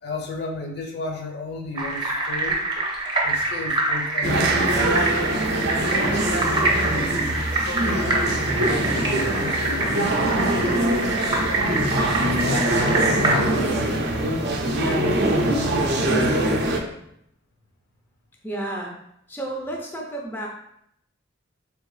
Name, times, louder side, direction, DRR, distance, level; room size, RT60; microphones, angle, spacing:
voice 1, 0.0-2.7 3.2-5.1 5.7-11.8 12.0-14.0 14.8-16.4, left 2 dB, 55° left, 2 dB, 0.7 m, -34 dB
sound 1, 1.7-13.4, right 2 dB, 25° right, 0.7 m, -25 dB
sound 2, 4.2-16.8, right 1 dB, 55° right, 0.5 m, -23 dB
voice 2, 18.4-19.0 19.3-20.5, right 1 dB, 10° left, -1 dB, 0.5 m, -31 dB
3.5 x 3.4 x 3.2 m, 0.75 s
head